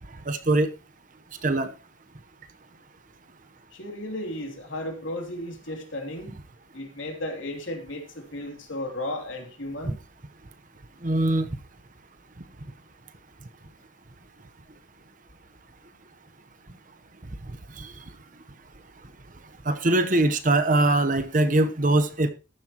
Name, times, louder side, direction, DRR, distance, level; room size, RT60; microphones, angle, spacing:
voice 1, 0.3-0.7 1.4-1.7 11.0-11.5 17.8-17.9 19.7-22.3, right 2 dB, 40° right, 10 dB, 1.1 m, -22 dB
voice 2, 3.7-6.4 6.7-10.0, left 1 dB, 75° left, 3 dB, 3.2 m, -34 dB
14.5 x 11.5 x 3.1 m, 0.31 s
head